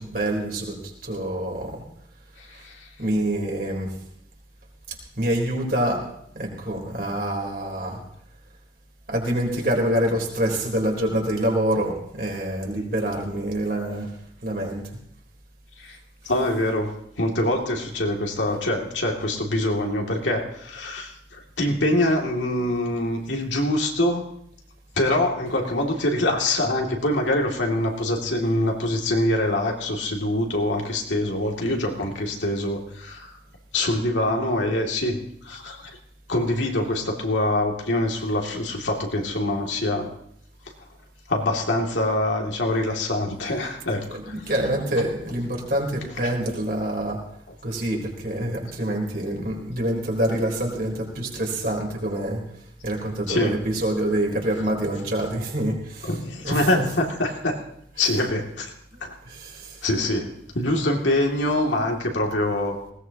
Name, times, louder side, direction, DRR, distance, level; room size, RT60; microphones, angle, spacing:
voice 1, 0.0-1.8 2.5-2.7 3.0-4.0 5.2-6.0 6.3-8.0 9.1-14.1 14.4-15.0 16.2-16.5 44.1-47.2 47.6-52.4 52.8-57.0 57.9-58.2 59.2-59.9, right 1 dB, 55° right, 0 dB, 3.9 m, -26 dB
voice 2, 16.3-24.2 25.0-33.3 33.7-35.9 36.3-40.1 41.3-44.3 53.3-53.5 56.0-57.5 58.0-58.7 59.0-59.1 59.8-62.8, left 1 dB, 85° left, 1 dB, 2.6 m, -24 dB
19.5 x 18.0 x 3.0 m, 0.72 s
head